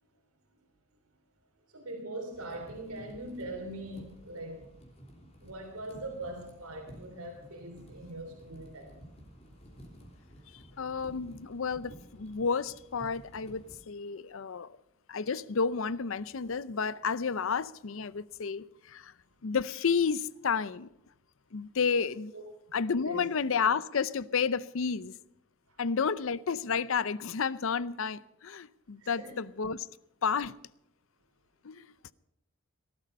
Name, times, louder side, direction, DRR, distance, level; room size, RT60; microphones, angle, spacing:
voice 1, 1.7-4.8 5.4-9.1 22.3-22.4 23.0-23.3 25.7-25.8 29.0-29.4, right 1 dB, 85° right, 3.2 m, -42 dB
sound 1, 2.3-13.8, equal, 30° left, 3.2 m, -53 dB
voice 2, 10.8-14.8 15.1-19.1 19.4-20.9 21.5-22.3 22.7-25.1 25.8-29.9 30.2-30.6 31.6-31.9, left 5 dB, 65° left, 0.5 m, -31 dB
19.5 x 12.5 x 5.4 m
head